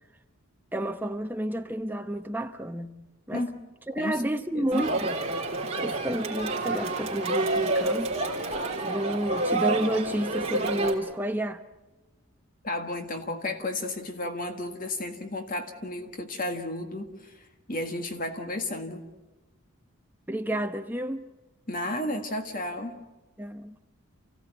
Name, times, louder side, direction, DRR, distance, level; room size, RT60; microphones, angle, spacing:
voice 1, 0.7-3.0 3.3-3.5 3.9-5.2 5.8-8.1 8.8-11.6 20.3-21.3 23.4-23.8, right 1 dB, 10° right, 0.9 m, -30 dB
voice 2, 4.5-4.8 12.6-19.0 21.7-23.0, left 1 dB, 40° left, 1.7 m, -33 dB
Crowd, 4.7-10.9, right 2 dB, 30° right, 3.5 m, -28 dB
29.0 x 16.0 x 9.2 m
head